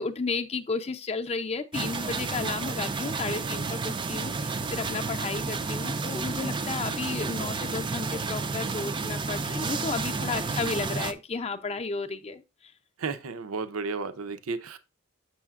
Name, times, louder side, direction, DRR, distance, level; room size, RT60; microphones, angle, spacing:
voice 1, 0.0-12.7, left 4 dB, 30° left, 0.5 m, -33 dB
sound 1, 1.7-11.1, right 4 dB, 20° right, 0.4 m, -31 dB
voice 2, 13.0-14.8, right 4 dB, 70° right, 0.6 m, -33 dB
6.9 x 6.4 x 2.4 m
head